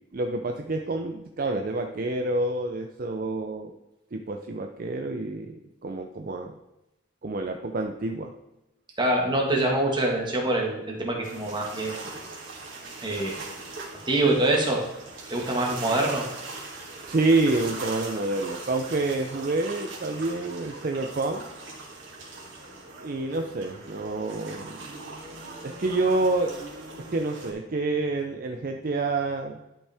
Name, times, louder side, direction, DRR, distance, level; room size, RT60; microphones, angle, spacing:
voice 1, 0.1-3.7 4.1-6.5 7.2-8.3 17.1-21.5 23.0-24.9 25.6-26.5 27.1-29.6, right 2 dB, 45° right, 4 dB, 0.5 m, -28 dB
voice 2, 9.0-12.0 13.0-13.4 14.1-14.8 15.3-16.3, right 1 dB, 25° right, -1 dB, 1.6 m, -25 dB
sound 1, 11.2-27.5, right 3 dB, 65° right, 2.4 m, -40 dB
12.0 x 5.4 x 3.5 m, 0.95 s
head